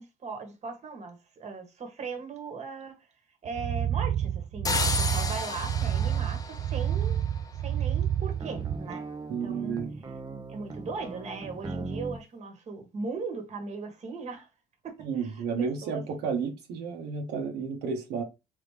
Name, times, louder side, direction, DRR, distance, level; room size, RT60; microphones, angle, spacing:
voice 1, 0.0-2.9 3.4-7.2 7.6-9.0 9.4-9.8 10.5-14.5 14.8-16.0, right 4 dB, 40° right, 1.4 m, -38 dB
sound 1, 3.5-8.8, right 10 dB, 60° right, 0.4 m, -29 dB
sound 2, 4.6-7.5, left 4 dB, 20° left, 0.6 m, -32 dB
sound 3, 8.4-12.2, right 3 dB, 25° right, 0.7 m, -39 dB
voice 2, 9.3-9.9 15.0-18.2, right 5 dB, 80° right, 1.2 m, -32 dB
3.7 x 3.5 x 3.3 m
cardioid pair, 110°, 17 cm